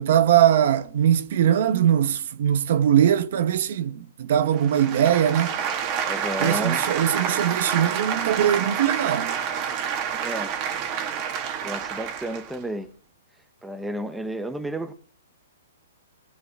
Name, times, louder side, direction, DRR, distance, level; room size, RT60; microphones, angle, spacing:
voice 1, 0.0-5.5 6.4-9.4, right 10 dB, 55° right, 1.1 m, -21 dB
sound 1, 4.5-12.6, right 7 dB, 30° right, 2.0 m, -28 dB
voice 2, 6.0-6.8 10.2-10.6 11.6-12.9 13.6-14.9, right 1 dB, 5° right, 1.0 m, -32 dB
20.0 x 9.2 x 3.7 m
hypercardioid pair, 145°, 0 cm